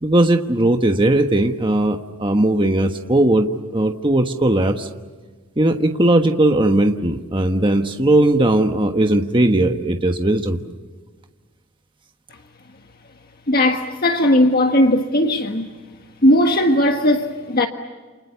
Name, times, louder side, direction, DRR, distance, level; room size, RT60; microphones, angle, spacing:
voice 1, 0.0-4.9 5.6-10.6, right 1 dB, 20° right, 1.3 m, -18 dB
voice 2, 13.5-15.7 16.2-17.7, left 1 dB, 40° left, 1.5 m, -17 dB
29.5 x 28.5 x 7.0 m
head